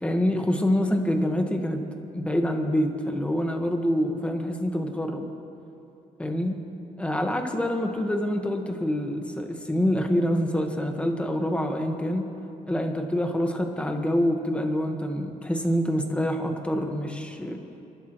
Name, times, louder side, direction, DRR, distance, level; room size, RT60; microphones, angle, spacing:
voice 1, 0.0-1.8 2.1-5.3 6.2-6.5 7.0-12.3 12.7-17.6, equal, 10° left, 3 dB, 1.4 m, -26 dB
30.0 x 12.0 x 3.1 m, 3.0 s
cardioid pair, 125°, 14 cm